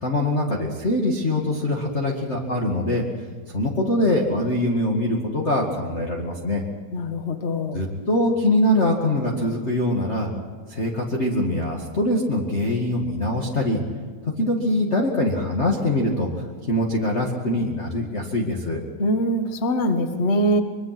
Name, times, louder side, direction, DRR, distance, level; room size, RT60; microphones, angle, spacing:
voice 1, 0.0-3.0 3.5-6.6 7.7-10.3 10.7-13.8 14.4-16.3 16.7-18.8, left 1 dB, 25° left, -1 dB, 1.9 m, -23 dB
voice 2, 6.9-7.8 19.0-20.6, equal, 40° left, 7 dB, 0.9 m, -23 dB
24.5 x 23.0 x 6.1 m, 1.5 s
omnidirectional pair, 3.8 m